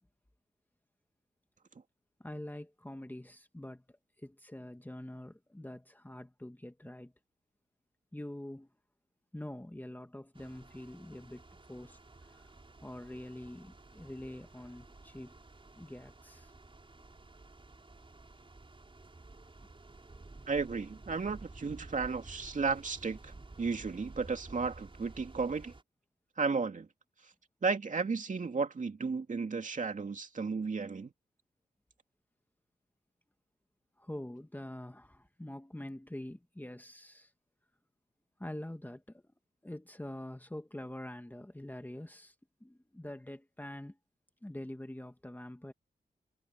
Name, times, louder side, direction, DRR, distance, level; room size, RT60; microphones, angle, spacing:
voice 1, 2.2-7.1 8.1-8.7 9.3-11.4 11.7-12.0 12.3-12.5 12.8-15.3 15.7-16.5 34.0-37.3 38.4-39.2 39.6-42.3 42.6-44.0 44.4-45.7, left 1 dB, 10° left, 1.9 m, -45 dB
sound 1, 10.3-25.8, right 2 dB, 35° right, 5.3 m, -53 dB
voice 2, 20.5-25.7 26.4-26.9 27.6-31.1, right 4 dB, 50° right, 2.6 m, -34 dB
cardioid pair, 55°, 16 cm